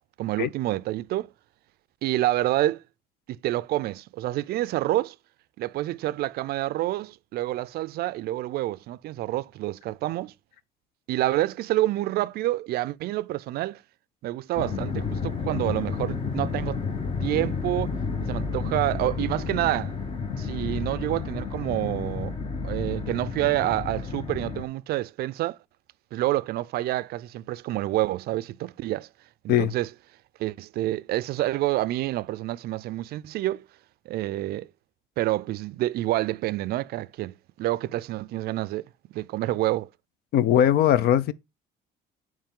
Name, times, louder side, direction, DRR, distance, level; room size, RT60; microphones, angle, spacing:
voice 1, 0.2-1.3 2.0-2.8 3.3-5.2 5.6-10.3 11.1-13.8 14.2-16.8 17.2-18.0 18.2-19.9 20.4-22.4 22.6-25.6 26.1-29.1 29.4-29.9 30.4-33.6 34.1-34.7 35.2-38.9 39.1-39.9, right 16 dB, 65° right, 0.4 m, -28 dB
sound 1, 14.6-24.7, left 5 dB, 30° left, 1.0 m, -31 dB
voice 2, 40.3-41.3, left 10 dB, 65° left, 0.5 m, -20 dB
8.7 x 3.1 x 3.6 m
cardioid pair, 110°, 17 cm